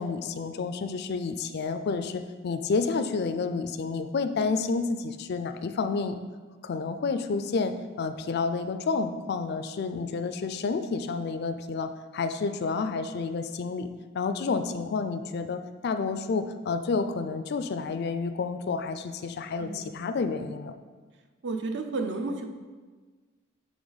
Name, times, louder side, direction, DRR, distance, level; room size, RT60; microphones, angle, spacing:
voice 1, 0.0-6.2 6.6-13.9 14.1-20.7, left 4 dB, 55° left, 9 dB, 0.4 m, -30 dB
voice 2, 19.6-19.9 21.4-22.4, right 3 dB, 60° right, 5 dB, 0.6 m, -32 dB
9.5 x 3.4 x 4.0 m, 1.4 s
head